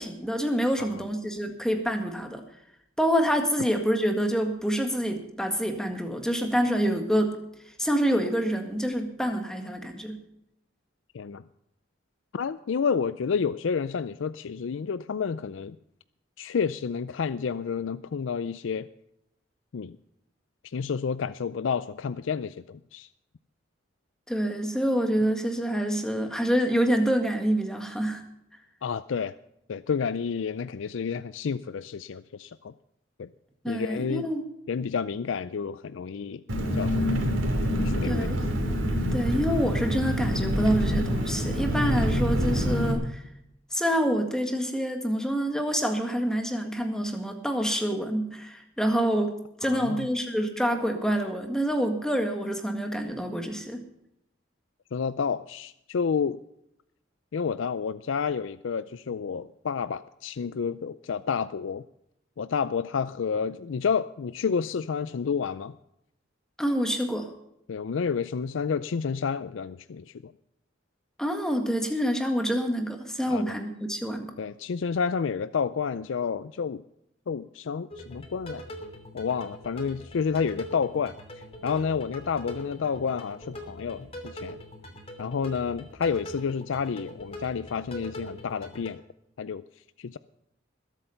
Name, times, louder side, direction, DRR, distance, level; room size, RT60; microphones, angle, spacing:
voice 1, 0.0-2.4 3.0-7.4 7.8-10.2 24.3-28.2 33.6-34.4 38.0-38.5 39.1-43.2 43.7-49.3 49.6-53.8 66.6-67.3 71.2-74.3, equal, 5° left, 4 dB, 1.8 m, -27 dB
voice 2, 12.3-15.8 16.4-18.9 19.7-20.0 20.7-23.1 28.8-29.3 29.7-32.7 33.2-33.3 33.7-34.3 34.7-36.4 36.7-37.1 37.8-38.3 49.6-50.1 54.9-56.4 57.3-61.8 62.4-65.8 67.7-70.3 73.3-73.4 74.4-76.8 77.3-78.7 79.1-81.1 81.6-84.6 85.2-89.0 89.4-89.6 90.0-90.2, left 6 dB, 80° left, 15 dB, 0.4 m, -30 dB
Engine, 36.5-42.9, equal, 90° right, 2.8 m, -26 dB
sound 1, 77.9-88.9, equal, 30° left, 3.0 m, -42 dB
20.5 x 8.3 x 5.7 m, 0.80 s
head